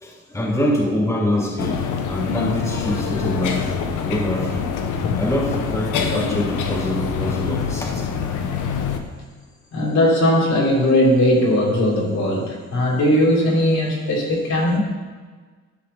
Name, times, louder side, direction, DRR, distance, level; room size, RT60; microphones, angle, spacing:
voice 1, 0.0-3.8 4.0-8.2 14.4-14.5, left 1 dB, 10° left, -2 dB, 1.6 m, -25 dB
sound 1, 1.6-9.0, left 6 dB, 85° left, 1.1 m, -25 dB
voice 2, 9.7-14.8, left 1 dB, 65° left, -3 dB, 3.5 m, -18 dB
11.5 x 4.9 x 6.6 m, 1.4 s
cardioid pair, 90°, 30 cm